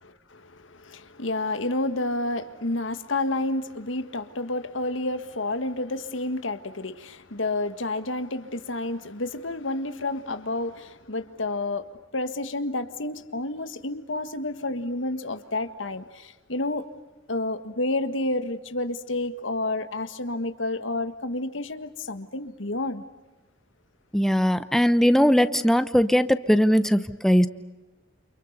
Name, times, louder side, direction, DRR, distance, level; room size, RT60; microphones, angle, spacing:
voice 1, 0.0-16.9 17.3-23.0, left 2 dB, 85° left, 1.8 m, -30 dB
voice 2, 24.1-27.5, equal, ahead, 0.9 m, -20 dB
29.5 x 28.5 x 6.7 m
head